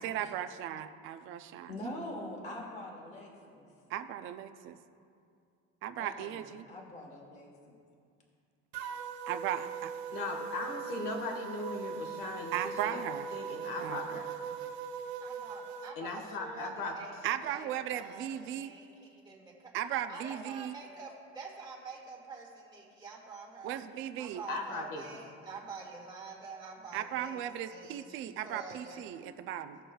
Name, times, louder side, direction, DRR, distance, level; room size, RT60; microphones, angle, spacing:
voice 1, 0.0-1.7 3.9-4.8 5.8-6.7 9.3-9.9 12.5-13.3 13.8-14.2 17.2-18.7 19.7-20.8 23.6-24.4 26.9-29.8, right 11 dB, 40° right, 9 dB, 0.4 m, -37 dB
voice 2, 1.7-3.7 6.0-6.4 6.7-7.5, left 1 dB, 20° left, -1 dB, 1.2 m, -43 dB
sound 1, 8.7-15.9, right 6 dB, 90° right, 0.8 m, -40 dB
voice 3, 10.1-13.1 13.3-14.3 15.9-16.9 24.5-25.0 29.2-29.3, left 3 dB, 75° left, 3 dB, 1.5 m, -38 dB
voice 4, 15.2-19.7 20.1-23.8 24.2-27.4 27.7-29.0, right 4 dB, 15° right, -3 dB, 1.5 m, -47 dB
17.0 x 6.2 x 2.3 m, 2.3 s
cardioid pair, 170°, 31 cm